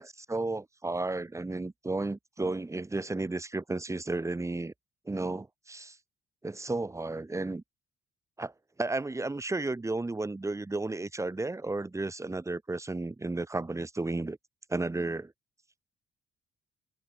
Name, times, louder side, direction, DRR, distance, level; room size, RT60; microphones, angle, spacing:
voice 1, 0.0-4.7 5.1-6.0 6.4-7.6 8.4-8.5 8.8-14.4 14.7-15.3, right 2 dB, 15° right, 1.2 m, -33 dB
open air
cardioid pair, 90°, 20 cm